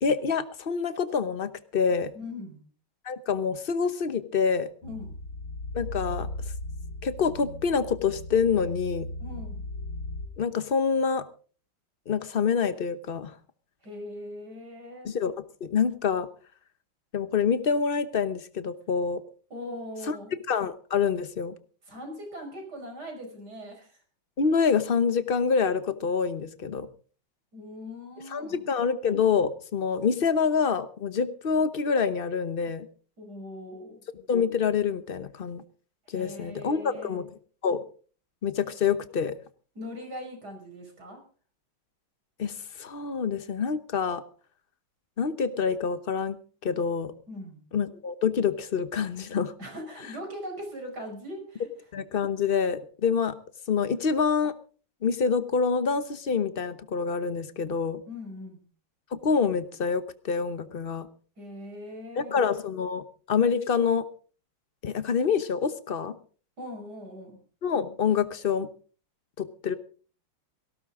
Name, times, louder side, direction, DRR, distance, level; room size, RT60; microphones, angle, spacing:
voice 1, 0.0-2.1 3.0-4.7 5.7-6.3 7.0-9.1 10.4-11.3 12.1-13.3 15.0-16.3 17.1-19.2 20.1-20.2 20.5-21.5 24.4-26.9 28.3-32.9 34.3-35.6 36.1-37.3 37.6-37.8 38.4-39.3 42.4-44.2 45.2-46.4 46.6-47.1 47.7-49.5 51.9-53.4 53.7-54.5 55.0-58.0 59.1-61.1 62.2-64.0 64.8-66.2 67.6-68.7 69.4-69.7, left 6 dB, 50° left, 12 dB, 0.7 m, -26 dB
voice 2, 2.1-2.6 4.8-5.2 9.2-9.7 13.8-15.1 19.5-20.3 21.8-24.0 27.5-28.6 33.2-34.0 36.1-37.2 39.8-41.2 47.3-47.6 49.6-51.7 58.1-58.6 61.4-62.6 66.6-67.4, left 1 dB, 50° right, 4 dB, 5.8 m, -40 dB
sound 1, 4.8-10.3, left 2 dB, 90° left, 2.8 m, -37 dB
18.5 x 16.5 x 3.7 m, 0.40 s
omnidirectional pair, 2.3 m